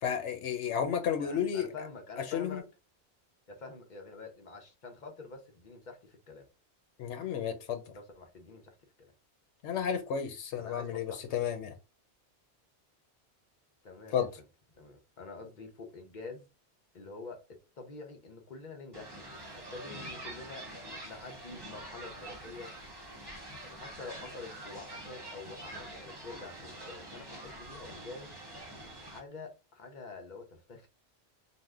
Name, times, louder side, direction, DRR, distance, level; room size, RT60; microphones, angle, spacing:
voice 1, 0.0-1.7 2.3-2.6 7.0-7.8 9.6-11.7 14.1-14.3, left 8 dB, 90° left, 0.9 m, -32 dB
voice 2, 1.2-2.7 3.5-6.4 7.9-9.1 10.6-11.5 13.8-14.4 14.7-16.4 16.9-17.4 17.8-19.2 19.7-22.8 23.6-28.4 29.1-30.9, left 3 dB, 50° left, 0.8 m, -47 dB
sound 1, 18.9-29.2, right 1 dB, 25° right, 0.8 m, -46 dB
2.7 x 2.1 x 3.4 m
omnidirectional pair, 1.1 m